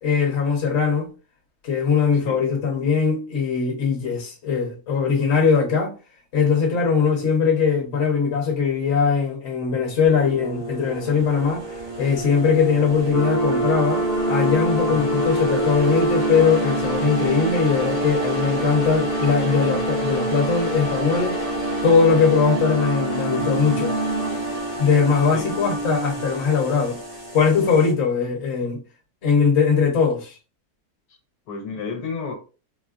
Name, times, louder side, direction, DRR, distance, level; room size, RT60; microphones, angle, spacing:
voice 1, 0.0-1.1 1.6-5.9 6.3-11.6 12.0-14.0 14.3-21.3 21.8-23.9 24.8-27.0 27.3-28.8 29.2-30.3, left 5 dB, 50° left, 1.2 m, -20 dB
sound 1, 10.1-27.9, right 1 dB, 80° right, 2.2 m, -32 dB
sound 2, 13.1-26.7, right 1 dB, 30° left, 0.8 m, -26 dB
voice 2, 14.9-15.2 25.3-25.5 31.1-31.2 31.5-32.3, left 5 dB, 80° left, 1.2 m, -31 dB
4.1 x 2.2 x 2.4 m
omnidirectional pair, 1.6 m